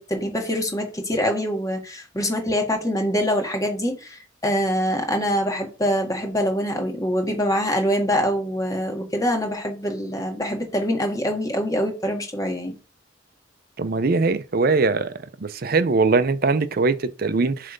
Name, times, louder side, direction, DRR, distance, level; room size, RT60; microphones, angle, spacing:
voice 1, 0.0-12.7, equal, 20° left, 1.6 m, -24 dB
voice 2, 13.8-15.1 15.4-17.7, right 3 dB, 50° right, 0.6 m, -21 dB
7.5 x 3.3 x 5.2 m
head